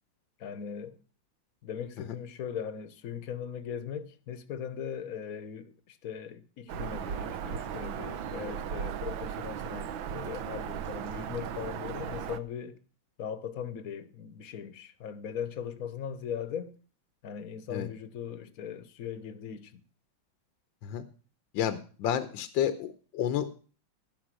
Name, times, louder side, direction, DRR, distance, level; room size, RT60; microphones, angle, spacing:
voice 1, 0.4-1.0 1.6-12.8 13.2-16.8 17.2-19.8, left 8 dB, 55° left, 1.3 m, -39 dB
Bird vocalization bird call bird song, 6.7-12.4, right 8 dB, 75° right, 1.6 m, -36 dB
voice 2, 21.5-23.5, left 9 dB, 75° left, 1.5 m, -30 dB
16.5 x 5.5 x 7.5 m
omnidirectional pair, 2.2 m